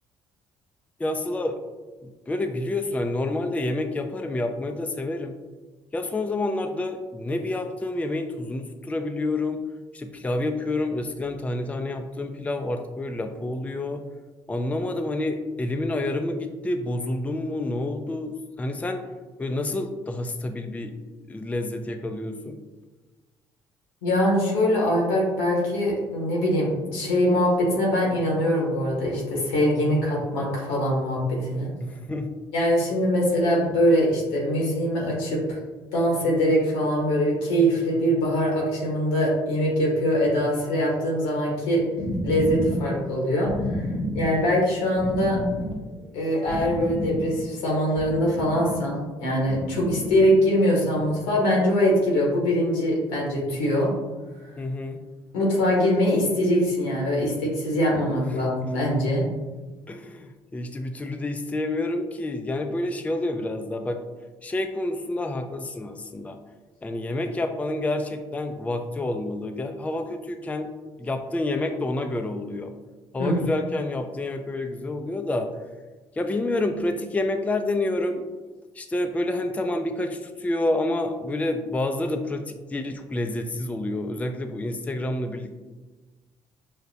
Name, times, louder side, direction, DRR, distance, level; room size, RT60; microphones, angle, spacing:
voice 1, 1.0-1.6 2.0-5.3 5.9-9.6 9.9-14.0 14.5-19.0 19.4-20.9 21.3-22.6 31.8-32.3 54.6-55.0 59.9-64.0 64.4-66.4 66.8-70.7 71.0-72.7 73.1-75.5 76.1-78.2 78.8-85.5, left 2 dB, 10° left, 6 dB, 0.4 m, -28 dB
voice 2, 24.0-31.7 32.5-35.6 35.9-41.8 42.2-45.4 46.1-53.9 55.3-59.3 73.2-73.4, equal, 85° left, -3 dB, 1.1 m, -23 dB
sound 1, 41.6-48.7 49.4-50.2 50.9-51.0, left 1 dB, 55° left, 0.7 m, -31 dB
5.4 x 2.1 x 2.6 m, 1.2 s
hypercardioid pair, 55°, 12 cm